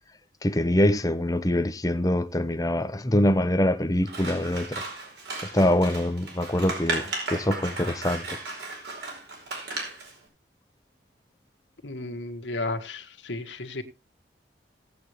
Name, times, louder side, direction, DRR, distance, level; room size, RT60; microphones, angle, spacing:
voice 1, 0.4-4.8 5.4-8.4, left 1 dB, 20° left, 0.9 m, -24 dB
Scissors, 4.0-10.1, right 3 dB, 70° right, 4.8 m, -35 dB
voice 2, 11.8-13.8, left 2 dB, 90° left, 1.6 m, -33 dB
17.5 x 8.3 x 3.2 m
head